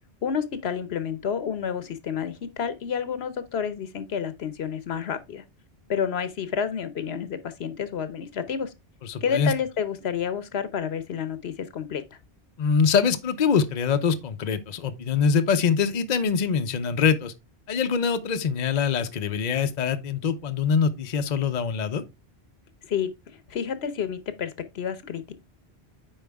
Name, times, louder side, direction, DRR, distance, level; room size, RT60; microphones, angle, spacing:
voice 1, 0.2-5.4 5.9-8.7 9.2-12.0 22.9-23.1 23.5-25.3, left 7 dB, 75° left, 1.1 m, -29 dB
voice 2, 9.0-9.5 12.6-17.3 17.7-22.0, left 6 dB, 50° left, 0.7 m, -24 dB
9.0 x 4.7 x 3.4 m
omnidirectional pair, 1.1 m